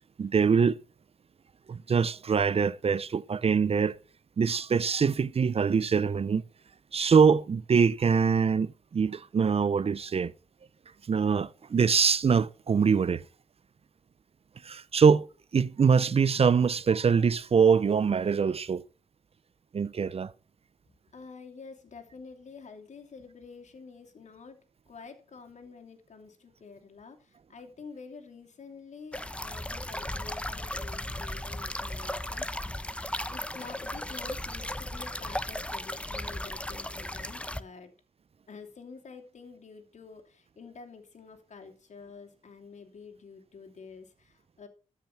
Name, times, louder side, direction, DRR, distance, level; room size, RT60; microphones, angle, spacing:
voice 1, 0.2-0.8 1.7-4.0 4.4-6.4 6.9-10.3 11.1-13.2 14.6-15.3 15.5-18.8 19.7-20.3, right 6 dB, 50° right, 0.6 m, -24 dB
voice 2, 21.1-32.8 33.3-37.9 38.5-44.7, left 5 dB, 65° left, 2.9 m, -48 dB
sound 1, 29.1-37.6, left 1 dB, 10° left, 1.0 m, -36 dB
13.5 x 6.0 x 5.8 m
cardioid pair, 50°, 13 cm